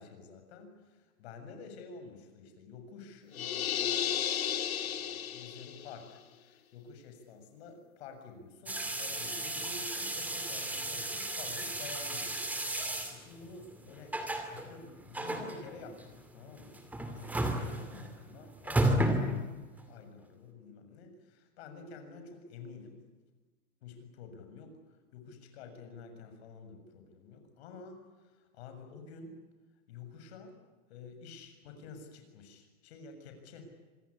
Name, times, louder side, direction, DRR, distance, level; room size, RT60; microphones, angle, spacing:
voice 1, 0.0-4.0 4.3-14.2 14.5-16.8 17.1-17.3 17.6-23.0 23.8-29.4 29.9-30.6 30.9-33.7, left 4 dB, 45° left, 6 dB, 7.0 m, -50 dB
sound 1, 3.3-5.9, left 10 dB, 75° left, 2.8 m, -33 dB
sound 2, 8.7-19.8, right 1 dB, 5° right, 2.4 m, -34 dB
26.5 x 20.5 x 10.0 m, 1.3 s
hypercardioid pair, 160°, 42 cm